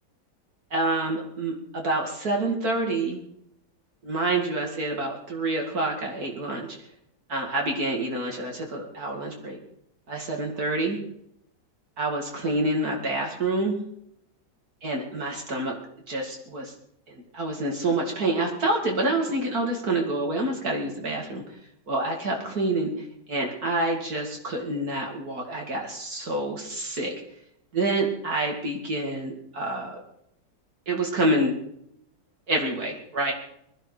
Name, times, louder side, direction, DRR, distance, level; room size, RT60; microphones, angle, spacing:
voice 1, 0.7-3.2 4.0-6.7 7.3-9.6 10.1-11.0 12.0-13.8 14.8-15.8 16.1-16.7 17.1-21.4 21.9-27.1 27.7-30.0 30.9-31.6 32.5-33.3, right 2 dB, 60° right, 1 dB, 2.8 m, -27 dB
20.5 x 13.5 x 4.9 m, 0.75 s
omnidirectional pair, 1.9 m